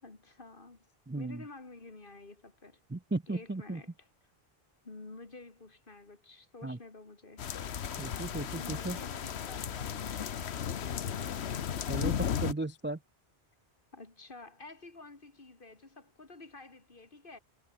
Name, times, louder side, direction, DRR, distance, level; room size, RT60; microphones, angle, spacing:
voice 1, 0.0-0.9 1.2-2.8 3.3-4.1 4.8-7.5 8.5-11.3 13.9-17.4, left 3 dB, 55° left, 2.7 m, -50 dB
voice 2, 1.1-1.4 2.9-3.8 6.6-6.8 8.0-9.0 11.9-13.0, right 2 dB, 15° right, 0.4 m, -36 dB
sound 1, 7.4-12.5, left 8 dB, 80° left, 1.2 m, -35 dB
omnidirectional pair, 1.1 m